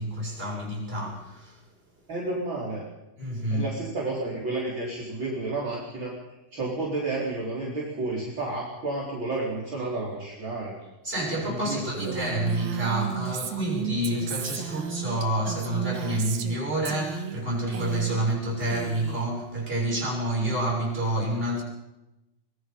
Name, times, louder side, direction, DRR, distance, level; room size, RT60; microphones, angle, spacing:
voice 1, 0.0-1.6 3.2-3.7 11.0-21.6, right 1 dB, 15° right, 7.0 m, -28 dB
voice 2, 2.1-2.9 3.5-6.1 6.5-10.7 11.5-12.2, right 2 dB, 35° right, 5.3 m, -31 dB
Female speech woman speaking, 12.0-16.6 16.9-17.4 17.7-18.3 18.6-19.3, right 9 dB, 65° right, 2.9 m, -34 dB
24.5 x 23.0 x 5.7 m
omnidirectional pair, 3.6 m